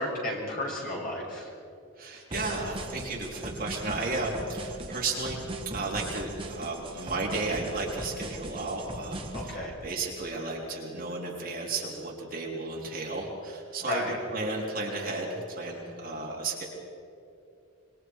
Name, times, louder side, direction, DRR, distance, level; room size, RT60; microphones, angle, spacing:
voice 1, 0.0-1.5 9.3-9.7 13.8-14.2, left 1 dB, 40° left, -3 dB, 6.2 m, -33 dB
voice 2, 2.0-5.5 5.7-16.7, right 3 dB, 40° right, -3 dB, 3.7 m, -33 dB
sound 1, 2.3-9.6, right 1 dB, 25° right, 1.7 m, -39 dB
26.5 x 23.0 x 4.8 m, 2.6 s
head